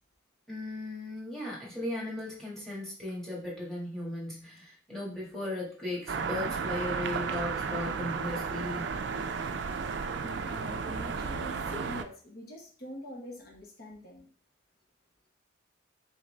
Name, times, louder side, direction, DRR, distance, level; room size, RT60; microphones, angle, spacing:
voice 1, 0.5-8.9, left 1 dB, ahead, -5 dB, 1.7 m, -37 dB
sound 1, 6.1-12.0, right 5 dB, 70° right, 0.4 m, -33 dB
voice 2, 10.2-14.3, left 1 dB, 50° left, 0 dB, 0.9 m, -44 dB
4.0 x 3.8 x 3.2 m, 0.43 s
head